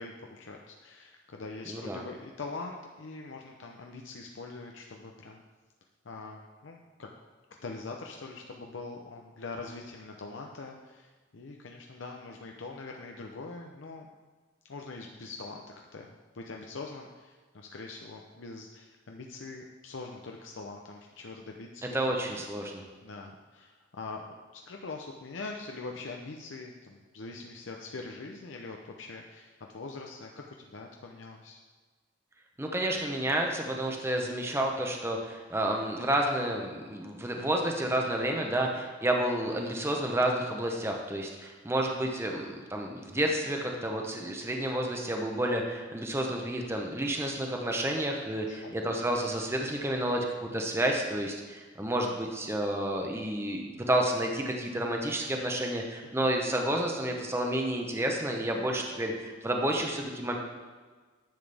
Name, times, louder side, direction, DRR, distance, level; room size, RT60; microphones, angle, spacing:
voice 1, 0.0-5.4 6.0-7.1 7.6-14.1 14.6-15.6 15.9-16.1 16.3-21.9 23.0-31.6 38.6-38.9 48.4-48.8 56.1-56.3, left 3 dB, 85° left, 1 dB, 0.6 m, -43 dB
voice 2, 1.7-2.0 21.9-22.8 32.6-60.4, right 1 dB, 15° right, 2 dB, 0.8 m, -30 dB
10.5 x 7.1 x 3.4 m, 1.4 s
head